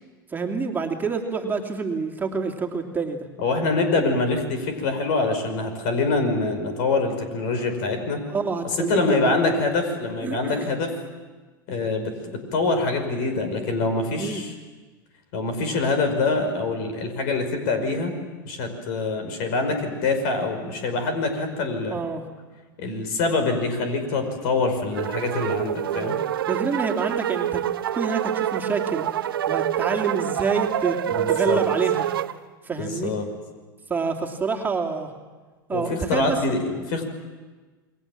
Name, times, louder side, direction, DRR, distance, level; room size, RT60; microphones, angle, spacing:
voice 1, 0.3-3.3 8.3-9.4 10.2-10.7 14.2-14.4 21.9-22.2 25.9-26.1 26.5-27.6 27.9-29.1 29.5-31.0 31.3-32.1 32.6-33.1 33.9-35.1 35.7-36.6, right 5 dB, 15° right, 1 dB, 2.8 m, -27 dB
voice 2, 3.4-8.2 8.8-10.9 11.7-14.5 15.3-18.1 18.4-22.0 22.8-26.2 31.1-31.6 32.8-33.3 35.7-37.0, left 3 dB, 60° left, 7 dB, 5.6 m, -25 dB
sound 1, 24.9-32.3, right 11 dB, 75° right, 0.8 m, -26 dB
29.0 x 22.5 x 7.6 m, 1.3 s
hypercardioid pair, 95°, 12 cm